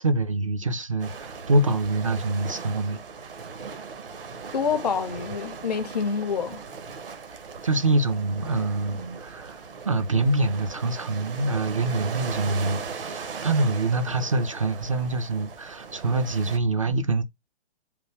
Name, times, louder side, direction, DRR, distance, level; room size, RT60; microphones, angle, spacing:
voice 1, 0.0-3.3 7.6-9.6 9.8-17.2, right 2 dB, 30° right, 0.4 m, -25 dB
sound 1, 1.0-16.6, right 5 dB, 60° right, 0.8 m, -38 dB
voice 2, 4.5-6.6, left 6 dB, 40° left, 0.5 m, -27 dB
3.5 x 2.6 x 4.2 m
figure-of-eight pair, 130°, 33 cm